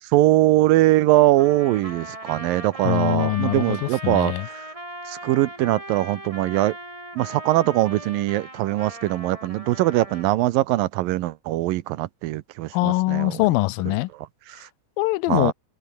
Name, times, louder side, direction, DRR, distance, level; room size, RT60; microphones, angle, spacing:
voice 1, 0.1-4.7 5.1-6.8 7.2-13.4 14.5-14.7 15.3-15.5, right 16 dB, 90° right, 2.6 m, -21 dB
Trumpet, 1.4-10.4, right 1 dB, 10° right, 4.4 m, -39 dB
voice 2, 2.8-4.5 12.7-14.1 15.0-15.5, left 20 dB, 90° left, 2.5 m, -23 dB
omnidirectional pair, 4.0 m